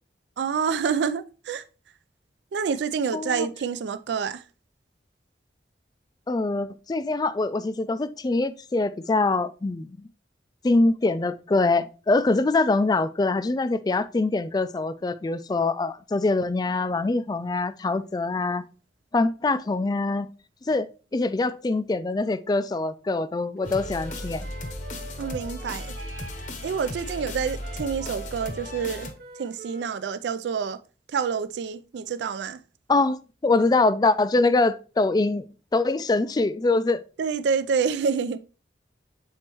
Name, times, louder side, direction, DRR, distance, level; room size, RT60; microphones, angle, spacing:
voice 1, 0.4-1.6 2.5-4.4 25.2-25.9 26.6-29.1 29.4-30.8 31.1-32.6 37.2-38.4, right 6 dB, 75° right, 0.3 m, -27 dB
voice 2, 3.1-3.5 6.3-10.0 10.6-18.6 19.1-20.3 20.6-20.9 21.1-24.5 32.9-35.4 35.7-37.0, left 3 dB, 20° left, 0.3 m, -24 dB
sound 1, 23.6-29.1, left 1 dB, 45° left, 0.8 m, -36 dB
Wind instrument woodwind instrument, 23.6-26.5 26.8-30.0, right 4 dB, 55° right, 0.8 m, -45 dB
7.6 x 4.4 x 3.0 m
head